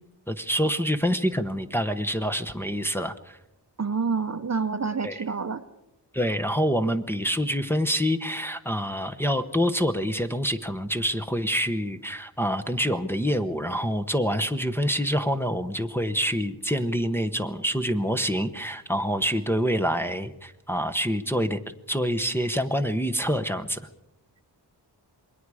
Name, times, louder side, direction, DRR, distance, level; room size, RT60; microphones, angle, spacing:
voice 1, 0.3-3.4 5.0-5.2 6.1-21.6 21.9-23.8, equal, 5° left, 5 dB, 0.9 m, -26 dB
voice 2, 3.8-5.6, right 5 dB, 40° right, 10 dB, 0.8 m, -28 dB
27.5 x 21.5 x 4.9 m, 0.88 s
wide cardioid pair, 125°, 42 cm